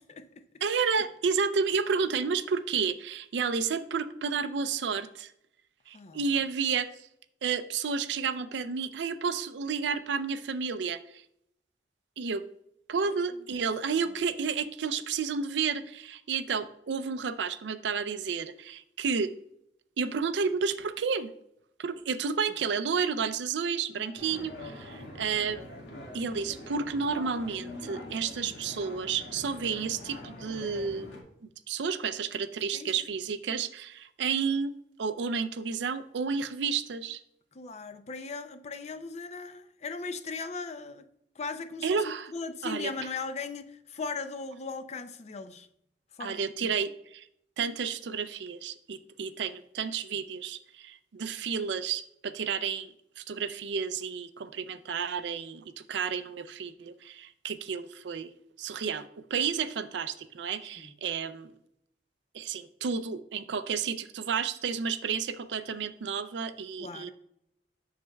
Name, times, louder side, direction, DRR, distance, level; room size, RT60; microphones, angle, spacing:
voice 1, 0.6-5.3 5.9-6.9 7.4-11.2 12.2-12.4 12.9-19.3 20.0-21.3 21.8-25.7 26.1-31.1 31.7-34.7 35.0-37.2 41.8-42.3 42.6-42.9 46.2-47.2 47.6-58.3 58.6-61.5 62.3-67.1, right 6 dB, 75° right, 12 dB, 0.4 m, -31 dB
voice 2, 5.9-6.2 13.1-13.2 24.0-24.2 32.7-33.1 37.5-41.1 41.4-45.7 46.2-46.8 60.8-60.9 66.8-67.1, left 4 dB, 40° left, 10 dB, 0.5 m, -38 dB
sound 1, 24.2-31.2, left 1 dB, 85° left, 1.8 m, -44 dB
7.5 x 6.5 x 2.3 m, 0.75 s
head